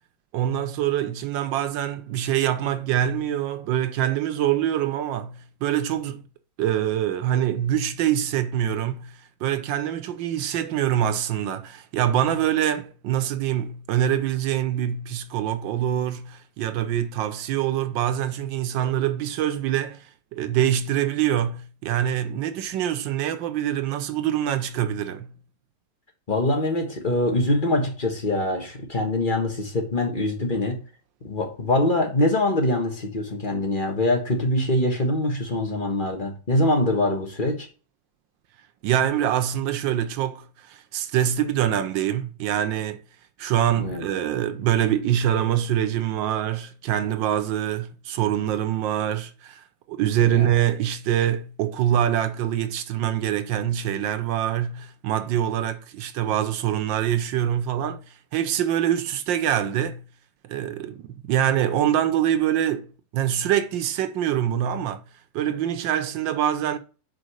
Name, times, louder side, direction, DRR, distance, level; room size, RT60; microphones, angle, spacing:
voice 1, 0.3-6.2 6.6-25.4 38.8-43.0 43.4-58.0 58.3-60.0 60.4-65.0 65.3-66.8, right 10 dB, 75° right, 1.4 m, -25 dB
voice 2, 26.3-30.8 31.2-37.7 43.8-44.0 50.2-50.5, left 1 dB, 30° left, 1.5 m, -24 dB
5.2 x 4.7 x 6.3 m
omnidirectional pair, 2.1 m